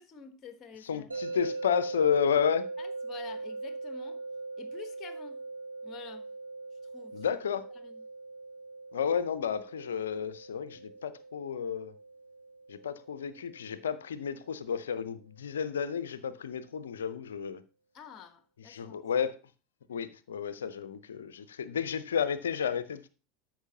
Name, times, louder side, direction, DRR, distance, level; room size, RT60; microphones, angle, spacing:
voice 1, 0.0-1.2 2.8-4.2 4.6-5.4 5.8-6.3 6.8-7.2 7.8-8.0 17.9-19.0, left 6 dB, 35° left, 1.1 m, -49 dB
voice 2, 0.9-2.7 7.1-7.6 8.9-11.9 12.7-17.6 18.7-19.4 19.9-23.1, left 7 dB, 70° left, 0.6 m, -31 dB
sound 1, 1.1-14.2, right 3 dB, 85° right, 1.6 m, -41 dB
12.5 x 6.0 x 2.8 m
figure-of-eight pair, 80°, 0 cm